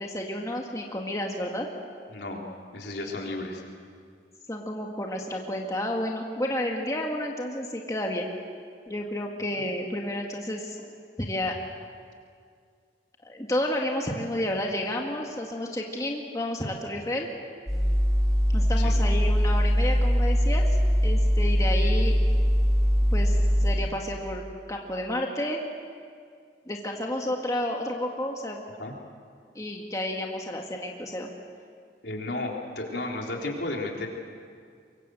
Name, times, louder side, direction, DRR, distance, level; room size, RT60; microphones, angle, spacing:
voice 1, 0.0-1.7 4.5-8.3 8.9-10.8 11.2-11.5 13.2-17.3 18.5-20.7 21.0-22.1 23.1-24.4 24.7-25.6 26.7-28.6 29.6-31.3, left 1 dB, 20° left, 0 dB, 2.0 m, -31 dB
voice 2, 2.1-2.4 2.7-3.6 9.5-9.6 18.8-19.0 28.8-28.9 32.0-34.1, left 2 dB, 75° left, 0 dB, 3.9 m, -33 dB
sound 1, 17.7-23.7, equal, ahead, 5.6 m, -22 dB
24.0 x 24.0 x 7.9 m, 2.2 s
head